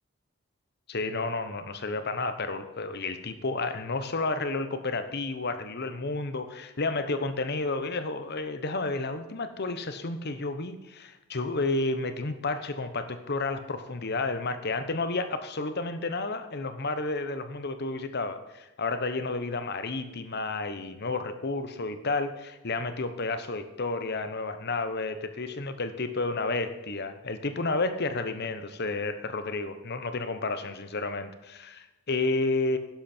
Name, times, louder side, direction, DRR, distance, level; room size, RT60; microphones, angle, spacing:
voice 1, 0.9-32.8, left 3 dB, 50° left, 9 dB, 1.0 m, -31 dB
11.5 x 10.5 x 4.5 m, 1.0 s
head